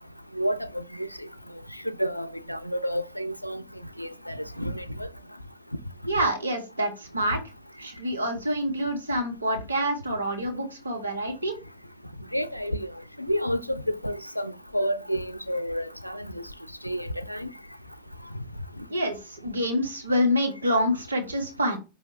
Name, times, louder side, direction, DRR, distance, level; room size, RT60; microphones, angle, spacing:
voice 1, 0.4-1.1 2.0-3.6 4.0-5.1 12.3-12.9 13.3-16.3 16.8-17.5, equal, 90° left, 0.3 m, -30 dB
voice 2, 6.1-7.4 7.8-11.6 18.9-21.8, equal, 75° right, 1.0 m, -27 dB
4.9 x 2.8 x 2.7 m
figure-of-eight pair, 90°, 0 cm